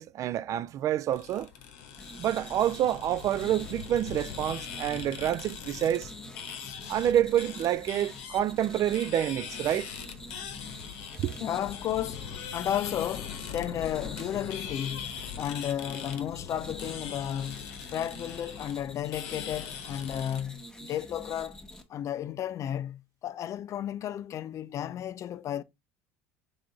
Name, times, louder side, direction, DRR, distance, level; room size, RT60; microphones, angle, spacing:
voice 1, 0.0-1.5 2.2-6.1 6.9-9.9 11.2-11.4, right 11 dB, 45° right, 0.3 m, -28 dB
sound 1, 1.1-20.4, left 8 dB, 70° left, 0.8 m, -42 dB
sound 2, 2.0-21.8, left 1 dB, 10° left, 1.0 m, -47 dB
voice 2, 11.4-21.6 21.9-25.6, left 10 dB, 45° left, 0.4 m, -33 dB
3.7 x 3.4 x 3.8 m
hypercardioid pair, 75°, 7 cm